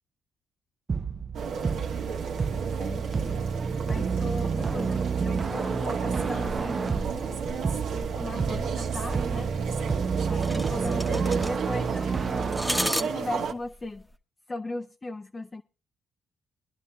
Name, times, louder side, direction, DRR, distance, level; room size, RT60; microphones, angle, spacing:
sound 1, 0.9-12.9, right 5 dB, 35° right, 0.5 m, -30 dB
sound 2, 1.3-13.5, right 6 dB, 75° right, 1.3 m, -33 dB
voice 1, 2.8-7.4 7.9-9.5 10.3-12.7 13.0-14.0 14.5-15.6, left 2 dB, 25° left, 0.6 m, -38 dB
sound 3, 6.3-14.1, left 1 dB, 5° left, 1.0 m, -36 dB
23.5 x 11.5 x 2.3 m
cardioid pair, 90°, 0 cm